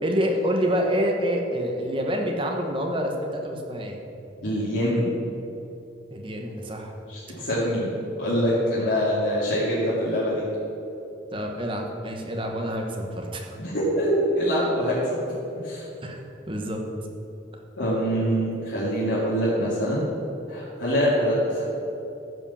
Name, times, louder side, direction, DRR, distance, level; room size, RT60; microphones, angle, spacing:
voice 1, 0.0-4.0 6.1-6.9 11.3-13.5 16.0-16.2 16.5-16.8, equal, 25° right, 1 dB, 1.2 m, -27 dB
voice 2, 4.4-5.1 7.1-7.9 8.2-10.4 13.6-15.2 15.6-15.8 17.8-20.0 20.5-21.6, equal, 70° left, -10 dB, 2.4 m, -24 dB
13.5 x 5.2 x 7.2 m, 2.9 s
head